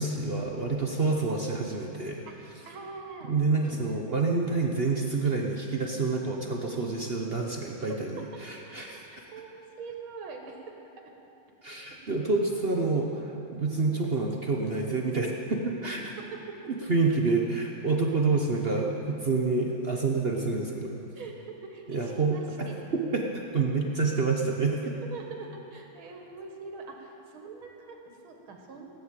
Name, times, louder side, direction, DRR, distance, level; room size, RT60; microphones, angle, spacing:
voice 1, 0.0-2.2 3.3-9.1 11.6-16.0 16.7-20.9 21.9-24.8, right 3 dB, 45° right, 0 dB, 0.8 m, -28 dB
voice 2, 2.7-3.8 4.0-4.3 7.9-8.0 8.6-10.7 11.2-11.3 15.8-16.6 21.2-23.0 25.0-28.9, right 4 dB, 80° right, 2 dB, 2.4 m, -43 dB
16.5 x 9.4 x 7.4 m, 2.8 s
omnidirectional pair, 2.2 m